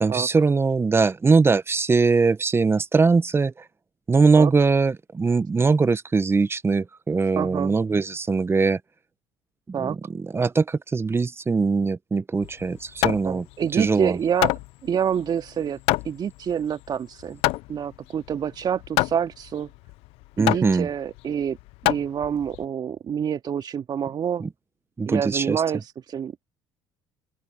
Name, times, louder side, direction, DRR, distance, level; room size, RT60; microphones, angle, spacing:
voice 1, 0.0-3.5 4.1-8.8 9.7-13.4 13.7-14.2 20.4-20.9 24.4-24.5 25.0-25.6, right 4 dB, 25° right, 1.1 m, -21 dB
voice 2, 7.4-7.8 9.7-10.0 13.2-14.5 14.8-15.8 16.0-17.4 17.7-19.7 20.4-21.6 21.8-24.4 25.0-26.5, right 8 dB, 45° right, 3.1 m, -27 dB
Hammer, 12.4-22.6, left 21 dB, 65° left, 0.7 m, -28 dB
open air
hypercardioid pair, 70°, 11 cm